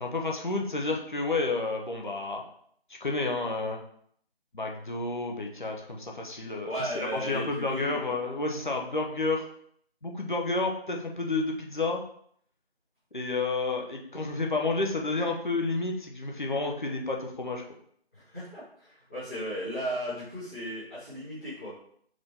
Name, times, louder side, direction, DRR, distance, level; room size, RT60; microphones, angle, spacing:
voice 1, 0.0-2.4 3.0-3.8 4.5-9.4 10.0-12.0 13.1-17.6, left 3 dB, 50° left, 1 dB, 0.8 m, -30 dB
voice 2, 6.6-8.2 18.1-21.7, equal, 10° left, -19 dB, 1.3 m, -35 dB
5.0 x 2.7 x 3.6 m, 0.64 s
figure-of-eight pair, 170°, 32 cm